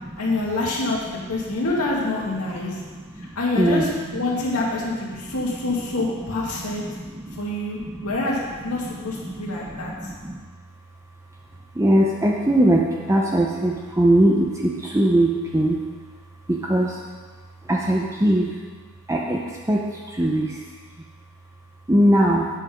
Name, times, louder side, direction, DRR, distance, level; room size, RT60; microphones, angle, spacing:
voice 1, 0.2-2.8 3.4-6.8 7.4-9.9, left 2 dB, 75° left, -4 dB, 2.2 m, -26 dB
voice 2, 2.6-3.8 5.1-5.2 6.6-7.4 7.8-8.1 8.8-10.4 11.7-15.8 16.5-17.0 17.6-18.5 19.1-20.6 21.9-22.5, right 1 dB, 15° right, -2 dB, 0.7 m, -21 dB
8.2 x 7.8 x 5.0 m, 1.4 s
head